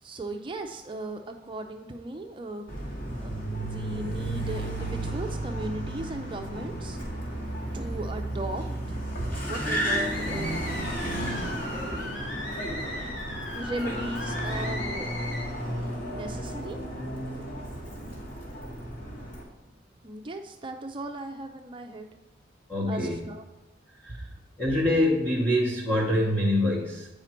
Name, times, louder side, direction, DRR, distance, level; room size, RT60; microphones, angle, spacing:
voice 1, 0.0-2.7 3.2-7.0 7.7-10.6 11.7-12.1 13.6-15.6 16.1-16.8 20.0-22.1 22.9-23.4, right 2 dB, 25° right, 4 dB, 0.4 m, -37 dB
Car, 2.7-19.4, right 1 dB, 50° left, 2.2 m, -33 dB
sound 1, 9.7-15.5, left 1 dB, 75° left, 1.4 m, -38 dB
voice 2, 22.7-23.2 23.9-24.3 24.6-27.1, left 1 dB, 10° left, -6 dB, 1.0 m, -25 dB
8.7 x 5.0 x 4.4 m, 1.1 s
head